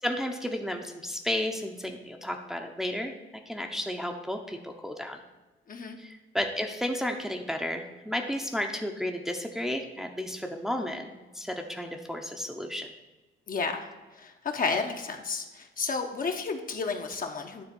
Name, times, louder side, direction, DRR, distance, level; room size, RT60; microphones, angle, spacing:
voice 1, 0.0-3.1 3.5-5.2 6.0-12.9, left 1 dB, ahead, 2 dB, 0.8 m, -33 dB
voice 2, 13.5-13.8 14.1-17.6, left 4 dB, 45° left, 4 dB, 1.1 m, -32 dB
9.8 x 3.5 x 7.0 m, 1.2 s
cardioid pair, 90°, 20 cm